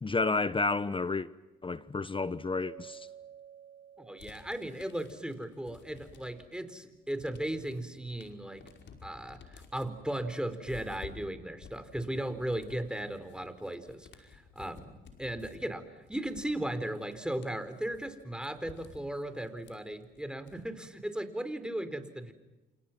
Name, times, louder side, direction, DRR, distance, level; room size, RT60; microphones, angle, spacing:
voice 1, 0.0-1.3 1.6-3.1, left 3 dB, 25° left, 1.0 m, -31 dB
Mallet percussion, 2.6-5.6, right 10 dB, 75° right, 3.7 m, -53 dB
voice 2, 4.0-8.7 9.0-22.3, right 1 dB, 5° right, 4.3 m, -37 dB
sound 1, 4.2-6.6 6.9-20.9, left 6 dB, 60° left, 5.3 m, -54 dB
29.5 x 28.0 x 6.1 m
supercardioid pair, 60°, 21 cm